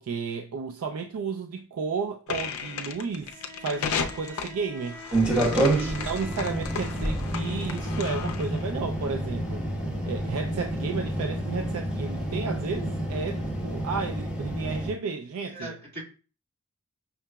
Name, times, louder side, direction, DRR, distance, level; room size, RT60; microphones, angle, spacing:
voice 1, 0.0-5.0 5.7-9.6 10.1-15.8, right 5 dB, 85° right, 0.4 m, -33 dB
sound 1, 2.3-8.6, left 6 dB, 80° left, 0.4 m, -35 dB
Bowed string instrument, 3.2-7.5, equal, 65° right, 1.1 m, -45 dB
sound 2, 5.1-14.9, right 1 dB, 5° right, 1.2 m, -29 dB
voice 2, 5.3-5.9 15.5-16.0, equal, 50° right, 1.8 m, -39 dB
5.7 x 2.8 x 2.3 m
head